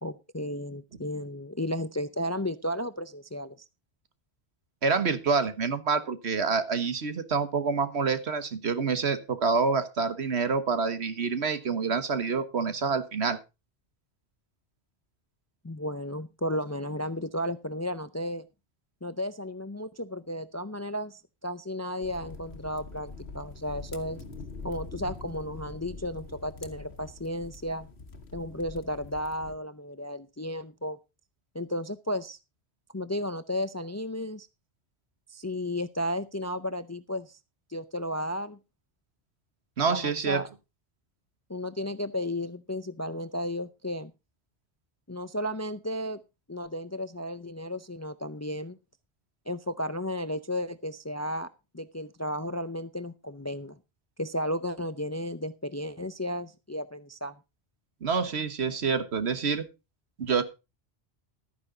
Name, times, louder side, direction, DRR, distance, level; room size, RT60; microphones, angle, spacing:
voice 1, 0.0-3.6 15.6-18.5 19.0-24.2 24.6-27.9 28.3-31.0 31.5-32.4 32.9-34.5 35.3-37.4 37.7-38.6 39.9-40.5 41.5-44.1 45.1-46.2 46.5-48.8 49.5-51.5 51.7-53.8 54.2-57.4, left 1 dB, 20° left, 13 dB, 0.4 m, -33 dB
voice 2, 4.8-13.4 39.8-40.4 58.0-59.7 60.2-60.4, right 5 dB, 80° right, 11 dB, 1.6 m, -27 dB
sound 1, 22.0-29.6, left 3 dB, 80° left, 1.6 m, -44 dB
13.0 x 9.8 x 3.9 m, 0.27 s
omnidirectional pair, 1.1 m